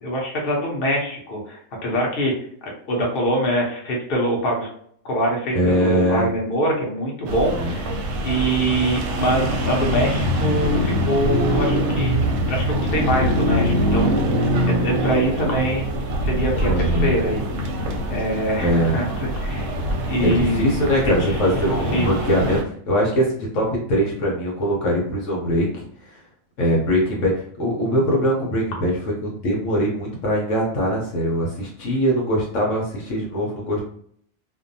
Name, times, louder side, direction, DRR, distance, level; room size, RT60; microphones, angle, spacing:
voice 1, 0.0-2.3 2.6-4.7 5.0-7.9 8.2-12.2 12.5-14.3 14.7-15.9 16.2-17.4 18.1-19.8 20.1-21.3 21.9-22.6, right 1 dB, 50° left, -2 dB, 0.9 m, -24 dB
voice 2, 5.5-6.3 7.5-7.8 16.6-17.1 18.6-19.2 20.2-22.6 22.9-25.7 26.0-26.2 26.6-27.3 27.6-33.8, equal, 65° left, -2 dB, 1.0 m, -22 dB
sound 1, 7.3-22.6, equal, 65° right, 0.8 m, -23 dB
2.6 x 2.2 x 2.6 m, 0.64 s
omnidirectional pair, 1.5 m